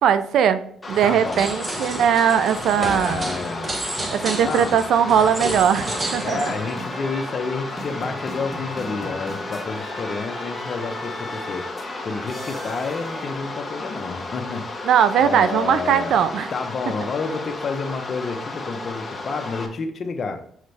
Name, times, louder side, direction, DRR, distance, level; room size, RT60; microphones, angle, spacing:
voice 1, 0.0-0.6 0.9-3.2 4.1-6.5 14.8-16.5, right 8 dB, 75° right, 12 dB, 0.5 m, -19 dB
sound 1, 0.8-19.7, left 2 dB, 25° left, 1.3 m, -34 dB
sound 2, 0.9-6.8, right 1 dB, 25° right, 1.1 m, -31 dB
voice 2, 1.0-1.5 2.8-3.7 4.4-4.8 6.2-11.7 12.0-14.6 15.2-16.1 16.5-20.4, left 4 dB, 45° left, 5 dB, 0.9 m, -29 dB
sound 3, 5.8-13.3, equal, 5° right, 1.8 m, -37 dB
6.3 x 5.2 x 3.4 m, 0.64 s
cardioid pair, 90°, 0 cm